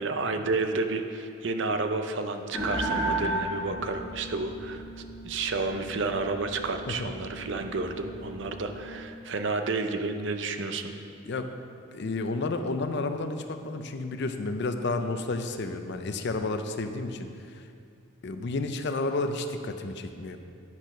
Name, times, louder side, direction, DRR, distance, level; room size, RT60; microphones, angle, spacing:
voice 1, 0.0-10.9, right 3 dB, 60° right, 7 dB, 0.6 m, -31 dB
sound 1, 2.5-8.9, right 1 dB, ahead, 1.9 m, -35 dB
voice 2, 11.9-17.6 18.2-20.4, left 3 dB, 55° left, 7 dB, 0.5 m, -31 dB
9.7 x 4.5 x 6.0 m, 2.4 s
head